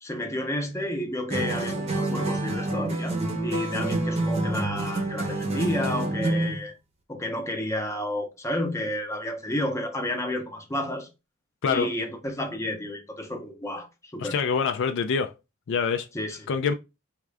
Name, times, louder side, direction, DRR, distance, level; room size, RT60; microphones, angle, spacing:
voice 1, 0.0-3.2 3.4-6.7 7.1-11.1 11.7-13.9 14.1-14.4 16.1-16.4, left 1 dB, 15° left, 0.6 m, -31 dB
sound 1, 1.3-6.6, right 1 dB, 30° right, 0.7 m, -27 dB
voice 2, 11.6-11.9 14.2-15.3 15.7-16.1 16.5-16.7, left 6 dB, 60° left, 0.4 m, -25 dB
3.6 x 2.4 x 3.2 m
head